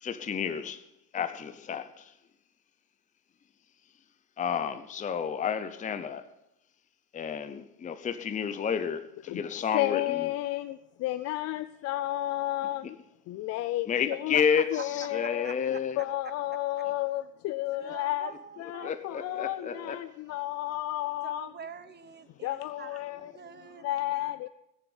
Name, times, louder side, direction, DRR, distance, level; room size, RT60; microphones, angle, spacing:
voice 1, 0.0-0.8 1.1-2.1 4.4-6.2 7.1-10.3 13.9-14.6 14.9-16.0 18.8-20.0, left 7 dB, 15° left, 0.8 m, -31 dB
voice 2, 9.7-13.0 13.3-14.4 14.7-15.5 16.0-18.3 18.6-21.5 22.4-23.3 23.8-24.5, left 15 dB, 35° left, 0.4 m, -32 dB
voice 3, 14.3-15.6 16.0-16.1 17.7-20.1 21.2-23.0 23.3-24.4, right 6 dB, 20° right, 1.0 m, -45 dB
17.5 x 7.2 x 8.0 m
supercardioid pair, 115°, 49 cm